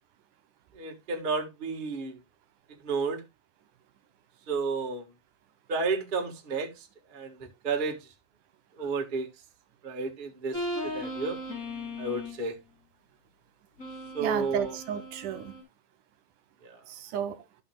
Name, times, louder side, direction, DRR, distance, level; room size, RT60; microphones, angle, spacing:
voice 1, 0.7-2.2 2.8-3.2 4.5-5.1 5.7-8.1 8.8-9.3 9.8-11.4 12.0-12.6 14.1-14.7 16.6-16.8, right 4 dB, 45° right, 0.6 m, -32 dB
sound 1, 10.5-12.5 13.8-15.6, left 1 dB, 25° left, 3.3 m, -37 dB
voice 2, 14.2-15.5 16.9-17.5, right 8 dB, 75° right, 2.3 m, -33 dB
13.5 x 5.7 x 2.3 m
omnidirectional pair, 3.8 m